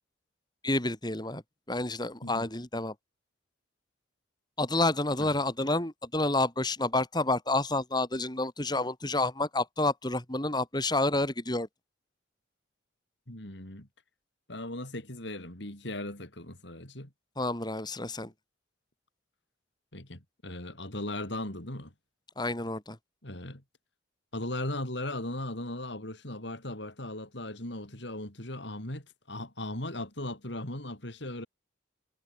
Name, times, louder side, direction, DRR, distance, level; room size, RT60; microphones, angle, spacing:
voice 1, 0.6-1.4 1.7-2.9 4.6-11.7 17.4-18.3 22.4-23.0, left 2 dB, 20° left, 4.7 m, -29 dB
voice 2, 13.3-13.9 14.5-17.1 19.9-21.9 23.2-23.6 24.3-31.5, left 1 dB, 65° left, 5.0 m, -38 dB
head